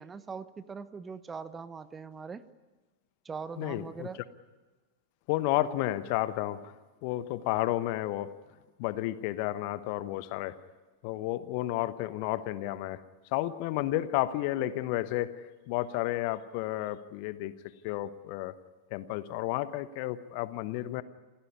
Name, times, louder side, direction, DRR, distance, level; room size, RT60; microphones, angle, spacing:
voice 1, 0.0-2.5 3.2-4.2, right 5 dB, 15° right, 15 dB, 1.1 m, -41 dB
voice 2, 3.6-4.1 5.3-6.7 7.0-8.3 8.8-10.6 11.0-13.0 13.3-17.5 17.8-18.5 18.9-21.0, left 15 dB, 45° left, 14 dB, 1.1 m, -32 dB
28.5 x 16.0 x 9.7 m, 1.3 s
figure-of-eight pair, 90°, 0 cm